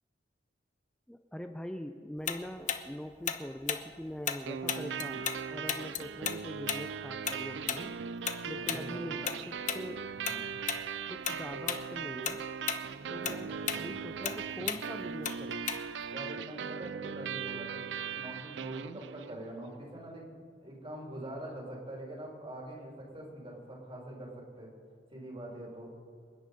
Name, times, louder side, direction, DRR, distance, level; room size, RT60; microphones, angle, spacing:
voice 1, 1.1-8.0 8.5-10.1 11.1-12.4 13.1-15.7, equal, 5° left, 6 dB, 0.5 m, -43 dB
Tick-tock, 2.3-5.4 5.7-10.4 10.7-10.9 11.2-11.8 12.1-16.1, left 8 dB, 45° left, 1.0 m, -35 dB
sound 1, 4.4-19.4, right 6 dB, 80° right, 0.5 m, -39 dB
voice 2, 8.6-9.3 10.1-10.5 13.2-13.9 16.1-20.3 20.6-24.7 25.1-25.9, right 1 dB, 30° right, -2 dB, 4.6 m, -44 dB
27.5 x 9.9 x 5.3 m, 2.1 s
head